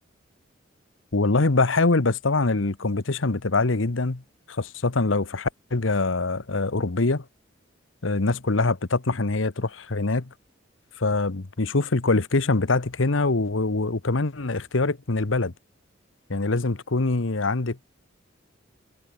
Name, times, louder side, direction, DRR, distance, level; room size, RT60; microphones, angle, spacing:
voice 1, 1.1-4.2 4.5-7.2 8.0-10.3 11.0-15.5 16.3-17.8, left 3 dB, 90° left, 1.2 m, -24 dB
head